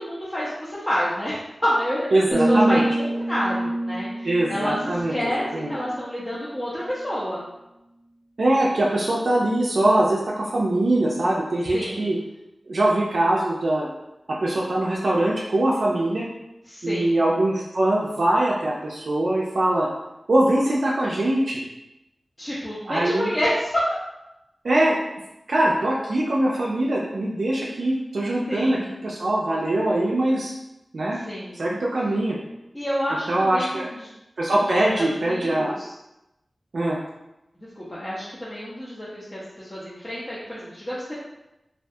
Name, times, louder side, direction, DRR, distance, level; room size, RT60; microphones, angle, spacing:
voice 1, 0.0-7.4 11.7-12.2 16.7-17.2 22.4-23.8 28.5-28.9 31.3-31.6 32.7-34.1 34.5-34.6 35.0-35.9 37.6-41.1, equal, 20° left, -8 dB, 0.5 m, -29 dB
voice 2, 2.1-2.8 4.2-5.8 8.4-12.2 12.7-13.9 14.4-16.3 16.8-19.9 20.3-21.6 22.9-23.3 24.6-25.0 25.5-30.5 30.9-31.3 31.5-32.4 33.3-33.9 34.4-35.7 36.7-37.0, right 1 dB, 70° right, -4 dB, 0.3 m, -22 dB
sound 1, 2.3-6.3 6.6-7.0, right 1 dB, 80° left, 0.6 m, -26 dB
2.3 x 2.2 x 2.6 m, 0.92 s
wide cardioid pair, 90°, 0 cm